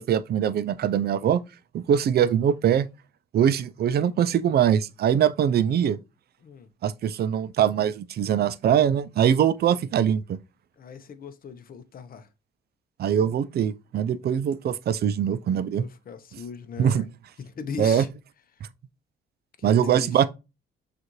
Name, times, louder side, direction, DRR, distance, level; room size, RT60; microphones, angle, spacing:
voice 1, 0.0-1.4 1.7-2.9 3.3-6.0 6.8-10.4 13.0-15.8 16.8-17.0 17.8-18.0 19.6-20.3, right 9 dB, 55° right, 0.4 m, -22 dB
voice 2, 10.8-12.3 15.5-17.1 17.4-18.1 19.6-20.3, left 6 dB, 45° left, 0.7 m, -39 dB
6.3 x 2.5 x 3.0 m
cardioid pair, 90°, 20 cm